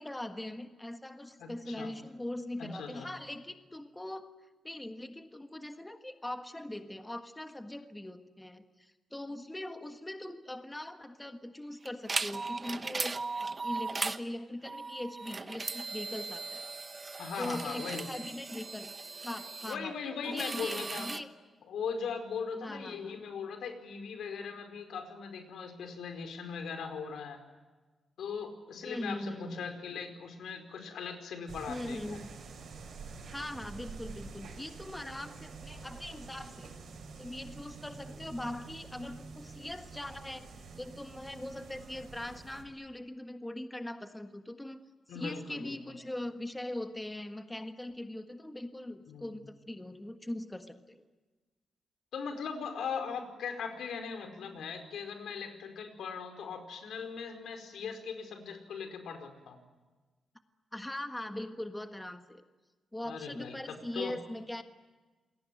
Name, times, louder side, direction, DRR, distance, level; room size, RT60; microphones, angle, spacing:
voice 1, 0.0-16.7 17.4-18.9 19.2-21.3 22.6-23.2 28.8-29.7 31.7-32.4 33.2-36.7 37.2-40.5 40.8-44.8 45.1-51.0 60.7-62.4 62.9-64.6, left 1 dB, 10° left, 7 dB, 1.5 m, -41 dB
voice 2, 1.4-1.9 2.6-3.1 17.2-18.0 19.7-21.1 21.7-27.4 28.2-32.2 45.1-46.0 49.1-49.4 52.1-59.6 63.0-64.1, left 6 dB, 90° left, 7 dB, 4.8 m, -39 dB
sound 1, 11.8-14.2 14.6-19.8 20.2-21.2, right 3 dB, 25° right, 1.1 m, -38 dB
sound 2, 31.5-42.6, right 4 dB, 65° right, 6.2 m, -48 dB
28.5 x 21.5 x 9.3 m, 1.3 s
wide cardioid pair, 150°, 0 cm